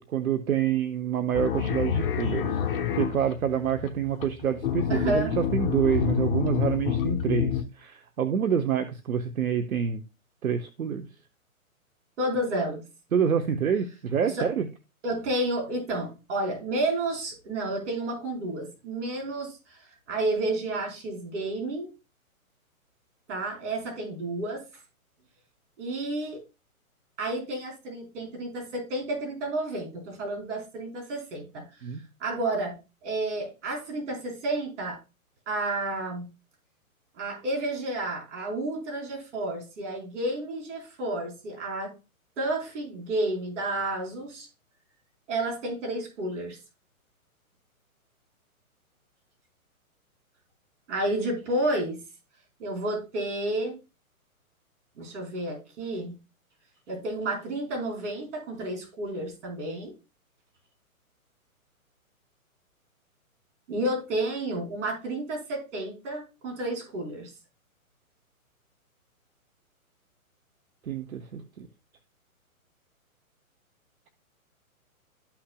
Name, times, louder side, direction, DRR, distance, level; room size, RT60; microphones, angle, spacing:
voice 1, 0.0-2.6 2.9-10.0 10.4-11.1 13.1-14.7 31.8-32.0 70.9-71.7, right 8 dB, 75° right, 1.0 m, -27 dB
sound 1, 1.3-7.6, left 8 dB, 40° left, 1.3 m, -28 dB
voice 2, 4.9-5.4 12.2-12.8 14.2-14.5 15.0-19.8 20.1-21.9 23.3-24.6 25.8-26.4 27.2-31.6 32.2-32.8 33.0-35.0 35.5-36.3 37.2-41.9 42.4-44.5 45.3-46.6 50.9-52.0 52.6-53.8 55.0-56.2 56.9-59.9 63.7-67.3, right 1 dB, 55° right, 4.1 m, -31 dB
13.0 x 5.9 x 2.2 m
hypercardioid pair, 135°, 43 cm